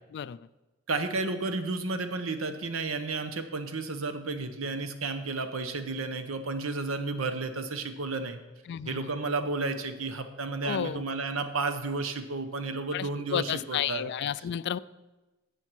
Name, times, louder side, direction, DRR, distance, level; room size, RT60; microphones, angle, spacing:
voice 1, 0.1-0.4 8.7-9.1 10.6-11.0 12.9-14.8, left 9 dB, 55° left, 17 dB, 0.3 m, -32 dB
voice 2, 0.9-8.4 8.9-14.0, right 3 dB, 75° right, 9 dB, 1.0 m, -32 dB
13.0 x 8.2 x 4.6 m, 1.1 s
head